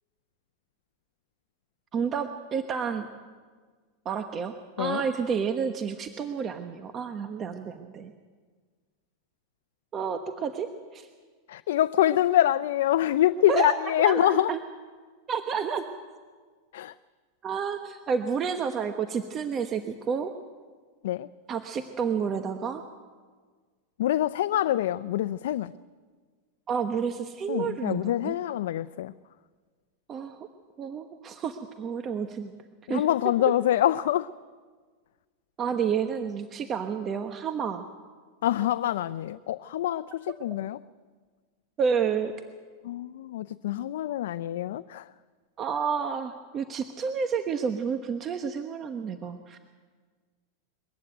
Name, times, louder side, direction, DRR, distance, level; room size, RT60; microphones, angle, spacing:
voice 1, 1.9-3.1 4.0-8.1 9.9-11.1 13.5-14.6 15.3-15.8 17.4-20.3 21.5-22.8 26.7-28.4 30.1-30.5 30.8-32.5 32.9-33.0 35.6-37.8 41.8-42.3 45.6-49.6, right 6 dB, 30° right, 7 dB, 1.1 m, -30 dB
voice 2, 11.5-14.5 16.7-16.9 21.0-21.3 24.0-25.7 27.5-29.1 32.9-34.3 38.4-40.8 42.8-45.1, left 12 dB, 75° left, 12 dB, 0.5 m, -25 dB
22.0 x 14.5 x 9.2 m, 1.5 s
supercardioid pair, 135°, 0 cm